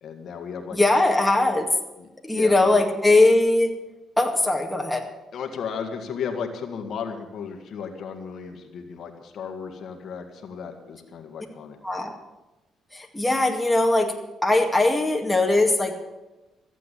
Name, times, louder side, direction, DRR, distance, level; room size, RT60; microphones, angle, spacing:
voice 1, 0.0-0.8 2.0-2.8 5.3-11.8, left 6 dB, 65° left, 4 dB, 1.8 m, -35 dB
voice 2, 0.7-1.7 2.2-3.7 4.2-5.0 11.8-12.2 12.9-14.1 14.4-15.9, left 2 dB, 5° left, 1 dB, 2.1 m, -20 dB
14.5 x 8.3 x 8.3 m, 1.0 s
cardioid pair, 90°, 0 cm